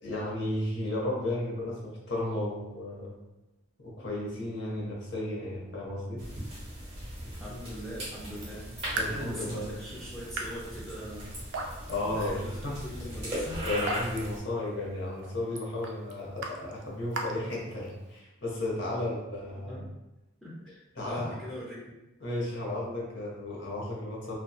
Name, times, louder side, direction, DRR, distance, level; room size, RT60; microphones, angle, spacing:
voice 1, 0.0-3.1 3.8-6.2 8.9-9.7 11.9-12.8 13.6-19.8 21.0-21.3 22.2-24.4, left 1 dB, 55° left, -4 dB, 0.8 m, -34 dB
sound 1, 6.2-14.4, equal, 30° right, 1.0 m, -39 dB
voice 2, 7.2-8.6 9.0-11.3 12.0-12.6 12.8-13.6 19.5-19.9 20.4-21.9, equal, ahead, -8 dB, 0.5 m, -41 dB
Raindrop / Drip, 8.3-18.2, right 2 dB, 55° right, 0.3 m, -41 dB
2.7 x 2.2 x 2.3 m, 0.98 s
head